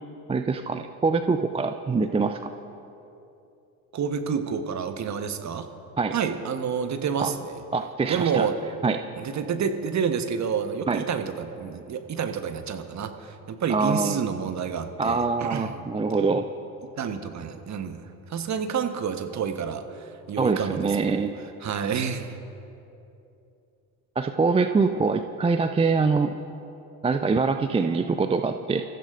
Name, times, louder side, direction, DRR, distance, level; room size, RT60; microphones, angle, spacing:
voice 1, 0.3-2.5 6.0-6.2 7.2-7.3 7.7-8.5 8.8-9.0 10.9-11.0 13.7-14.2 15.0-16.5 20.4-21.3 24.2-26.4 27.0-28.8, right 4 dB, 15° right, 8 dB, 0.5 m, -24 dB
voice 2, 3.9-5.7 6.1-7.6 8.0-8.5 9.2-15.7 17.0-21.2 21.6-22.4, right 7 dB, 40° right, 7 dB, 1.3 m, -29 dB
28.0 x 14.5 x 2.6 m, 2.8 s
hypercardioid pair, 60°, 44 cm